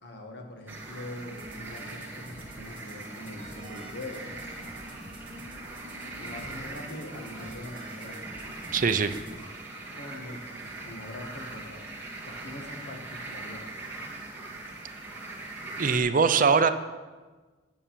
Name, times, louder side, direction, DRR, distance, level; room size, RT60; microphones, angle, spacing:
voice 1, 0.0-4.3 6.0-8.3 9.2-9.4 9.9-11.9 12.2-13.7 16.2-16.6, left 1 dB, 65° left, 2 dB, 1.9 m, -43 dB
sound 1, 0.7-16.0, right 2 dB, 10° right, 1.9 m, -41 dB
sound 2, 1.4-9.4, equal, 30° right, 1.6 m, -46 dB
voice 2, 8.7-9.1 15.8-16.7, right 5 dB, 50° right, 11 dB, 0.5 m, -22 dB
9.0 x 6.9 x 7.4 m, 1.3 s
head